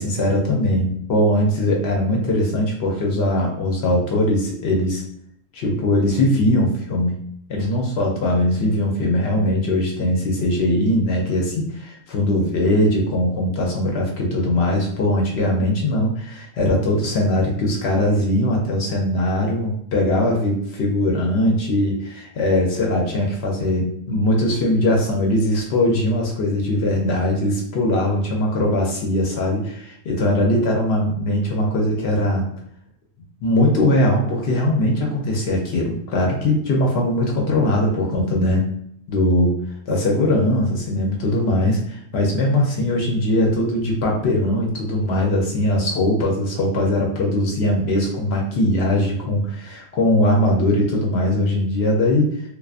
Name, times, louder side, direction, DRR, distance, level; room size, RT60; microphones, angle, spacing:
voice 1, 0.0-5.0 5.5-7.2 7.5-32.4 33.4-38.7 39.1-39.6 39.9-52.3, left 1 dB, 75° left, -1 dB, 0.8 m, -20 dB
2.3 x 2.3 x 2.4 m, 0.69 s
omnidirectional pair, 1.1 m